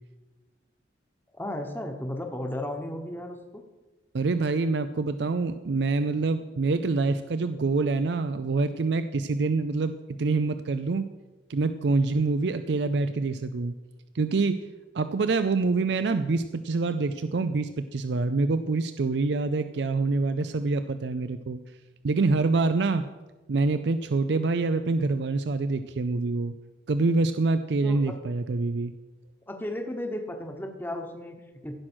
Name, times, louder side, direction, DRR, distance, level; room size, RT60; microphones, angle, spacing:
voice 1, 1.3-3.6 27.8-28.0 29.5-31.7, left 1 dB, 10° left, 4 dB, 1.1 m, -34 dB
voice 2, 4.1-11.1 11.5-13.7 14.1-14.7 14.9-21.6 22.0-23.1 23.5-26.5 26.9-28.9, right 3 dB, 70° right, 11 dB, 0.5 m, -26 dB
16.0 x 6.2 x 6.2 m, 1.2 s
head